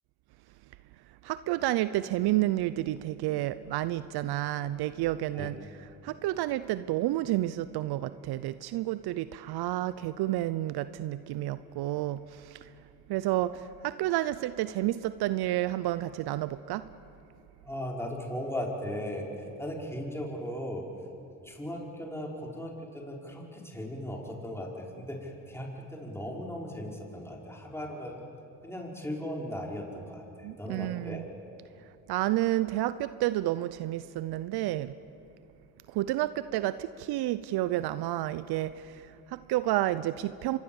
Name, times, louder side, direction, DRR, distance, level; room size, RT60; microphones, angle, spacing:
voice 1, 1.2-5.6 6.0-12.7 13.1-16.9 30.4-31.3 32.1-35.0 35.9-40.6, right 15 dB, 70° right, 15 dB, 0.7 m, -30 dB
voice 2, 17.6-20.8 21.4-28.2 28.6-31.2, equal, 5° left, -1 dB, 5.2 m, -37 dB
25.5 x 22.5 x 7.2 m, 2.7 s
supercardioid pair, 55°, 40 cm